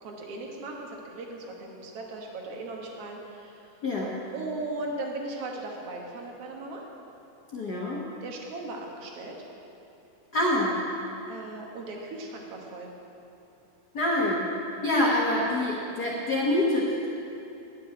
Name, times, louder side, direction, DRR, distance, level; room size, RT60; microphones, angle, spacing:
voice 1, 0.0-3.7 4.3-6.8 8.2-9.4 11.3-12.9, right 2 dB, 55° right, 0 dB, 2.1 m, -38 dB
voice 2, 3.8-4.1 7.5-8.0 10.3-10.8 13.9-14.5 14.8-17.1, left 1 dB, 80° left, -4 dB, 0.8 m, -26 dB
11.5 x 6.2 x 8.9 m, 2.8 s
omnidirectional pair, 3.7 m